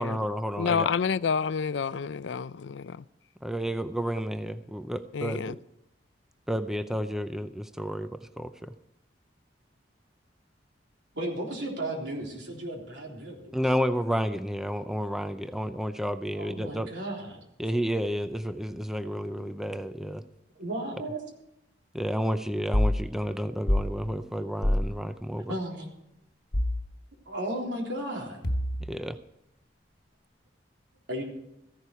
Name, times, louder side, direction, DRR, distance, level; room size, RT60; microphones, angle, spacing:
voice 1, 0.0-0.9 3.4-5.6 6.5-8.7 13.5-16.9 17.6-20.2 21.9-25.5 28.9-29.2, equal, ahead, 10 dB, 0.4 m, -31 dB
voice 2, 0.6-3.0 5.1-5.5, left 6 dB, 80° left, 17 dB, 0.4 m, -29 dB
voice 3, 11.1-13.5 16.4-17.4 20.6-21.2 25.5-25.9 27.3-28.5 31.1-31.2, right 1 dB, 80° right, -1 dB, 3.7 m, -34 dB
sound 1, 22.7-23.0 23.7-23.9 24.6-24.9 26.5-26.8 28.4-29.0, left 1 dB, 60° left, 1.5 m, -25 dB
15.0 x 11.0 x 4.7 m, 0.84 s
head